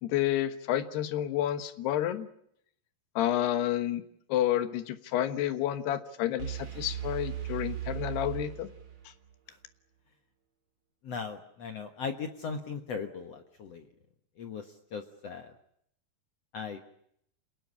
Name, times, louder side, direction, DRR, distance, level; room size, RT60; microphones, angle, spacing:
voice 1, 0.0-2.3 3.2-4.0 4.3-8.7, left 12 dB, 85° left, 10 dB, 3.4 m, -30 dB
sound 1, 6.4-9.3, right 11 dB, 35° right, 3.0 m, -37 dB
voice 2, 11.0-13.8 14.4-14.6 14.9-15.5 16.5-16.8, left 5 dB, 55° left, 7 dB, 1.9 m, -38 dB
27.5 x 20.0 x 8.7 m, 0.72 s
omnidirectional pair, 4.6 m